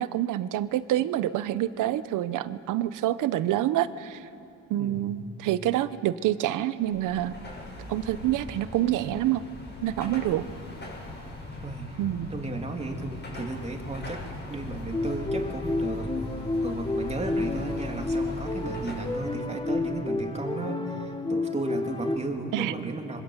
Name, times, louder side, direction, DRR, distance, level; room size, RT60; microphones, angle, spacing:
voice 1, 0.0-4.3 4.7-7.3 7.9-9.4 9.8-10.4 12.0-12.3 22.5-22.9, right 13 dB, 85° right, 14 dB, 0.9 m, -27 dB
voice 2, 4.8-5.2 11.6-12.0 12.3-14.2 14.5-16.1 16.6-23.2, right 2 dB, 20° right, 3 dB, 3.0 m, -34 dB
Car passing by / Traffic noise roadway noise / Engine, 6.8-19.4, left 1 dB, 35° left, 7.8 m, -40 dB
sound 1, 14.9-22.2, left 2 dB, 15° left, 1.7 m, -30 dB
27.0 x 25.0 x 8.1 m, 2.7 s
cardioid pair, 110°, 31 cm